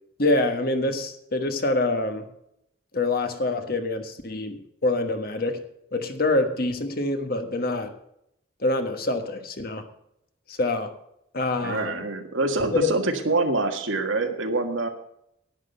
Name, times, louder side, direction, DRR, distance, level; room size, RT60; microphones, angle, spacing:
voice 1, 0.2-2.3 2.9-5.6 5.9-7.9 8.6-9.9 10.5-10.9 11.3-12.0 12.7-12.9, left 2 dB, 50° left, 7 dB, 1.4 m, -25 dB
voice 2, 11.6-14.9, right 2 dB, 85° right, 5 dB, 1.7 m, -25 dB
11.0 x 9.9 x 5.4 m, 0.77 s
head